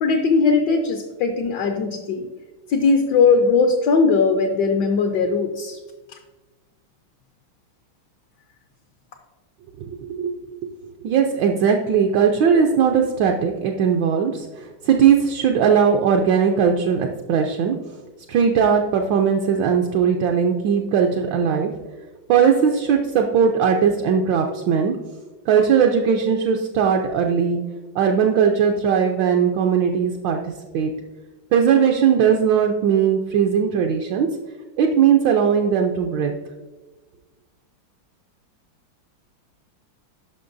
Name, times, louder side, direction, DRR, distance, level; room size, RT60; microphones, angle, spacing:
voice 1, 0.0-2.3 2.7-5.8 6.1-6.2, left 4 dB, 70° left, 5 dB, 1.0 m, -19 dB
voice 2, 9.8-10.3 11.0-17.7 18.3-21.7 22.3-24.9 25.5-27.6 27.9-30.4 30.7-30.9 31.5-34.3 34.8-36.3, right 7 dB, 75° right, 3 dB, 1.2 m, -19 dB
10.5 x 5.8 x 2.6 m, 1.2 s
omnidirectional pair, 2.3 m